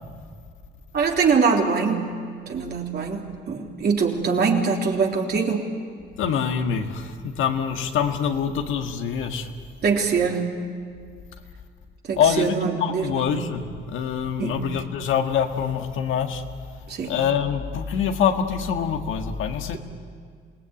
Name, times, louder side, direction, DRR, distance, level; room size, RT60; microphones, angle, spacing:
voice 1, 0.9-2.1 2.5-5.7 9.8-10.6 12.0-13.4 14.4-14.7 16.9-17.2, right 5 dB, 55° right, 0 dB, 3.5 m, -23 dB
voice 2, 6.2-9.5 12.2-16.4 17.0-19.8, left 7 dB, 85° left, 5 dB, 1.8 m, -25 dB
27.5 x 18.5 x 9.0 m, 2.1 s
cardioid pair, 90°, 20 cm